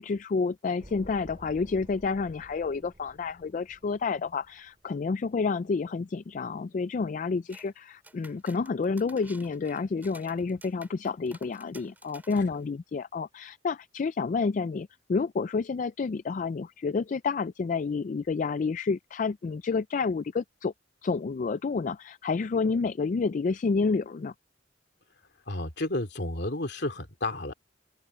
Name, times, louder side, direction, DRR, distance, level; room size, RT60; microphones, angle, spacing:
voice 1, 0.0-20.7 21.0-24.3, left 4 dB, 40° left, 0.3 m, -29 dB
sound 1, 0.8-5.1 5.3-5.4, equal, 35° right, 3.7 m, -52 dB
sound 2, 7.5-7.7 8.0-12.6, right 2 dB, 10° right, 2.6 m, -53 dB
voice 2, 25.5-27.5, left 2 dB, 60° left, 2.8 m, -31 dB
open air
head